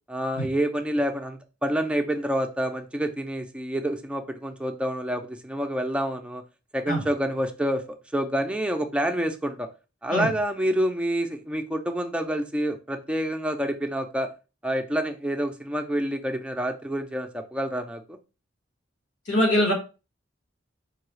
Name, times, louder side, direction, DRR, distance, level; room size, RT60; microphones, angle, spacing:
voice 1, 0.1-6.4 6.7-7.8 8.1-9.7 10.0-14.3 14.6-18.2, equal, 5° right, 5 dB, 0.4 m, -28 dB
voice 2, 19.3-19.7, equal, 85° left, 0 dB, 1.7 m, -22 dB
4.6 x 2.3 x 3.1 m, 0.30 s
head